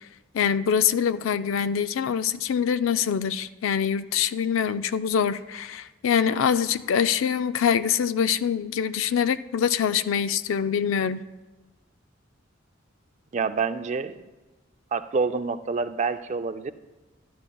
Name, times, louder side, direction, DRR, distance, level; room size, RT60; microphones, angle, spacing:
voice 1, 0.3-11.2, left 8 dB, 85° left, 13 dB, 0.4 m, -24 dB
voice 2, 13.3-14.1 14.9-16.7, right 4 dB, 35° right, 11 dB, 0.4 m, -27 dB
13.0 x 11.0 x 2.3 m, 1.1 s
head